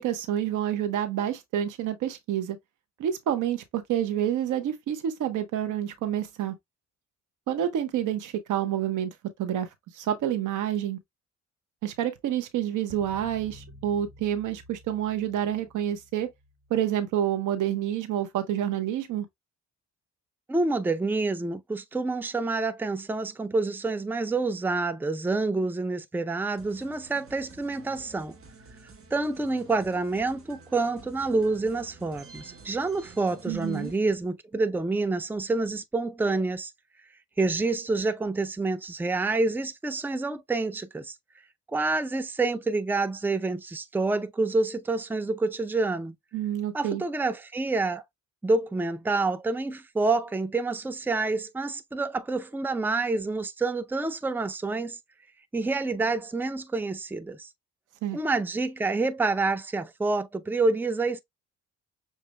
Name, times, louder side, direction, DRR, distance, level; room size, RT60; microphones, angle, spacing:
voice 1, 0.0-2.6 3.0-6.5 7.5-9.1 9.4-9.7 9.9-11.0 11.8-16.3 16.7-19.3 33.5-33.9 46.3-47.0 58.0-58.2, right 10 dB, 85° right, 1.1 m, -28 dB
sound 1, 12.9-17.4, left 1 dB, 20° right, 1.6 m, -51 dB
voice 2, 20.5-28.3 29.1-36.7 37.4-41.2 41.7-46.1 46.7-48.0 48.4-55.0 55.5-57.5 58.1-61.2, right 3 dB, 5° right, 0.5 m, -28 dB
sound 2, 26.6-34.0, right 3 dB, 45° right, 1.3 m, -50 dB
6.6 x 2.7 x 2.2 m
cardioid pair, 90°, 30 cm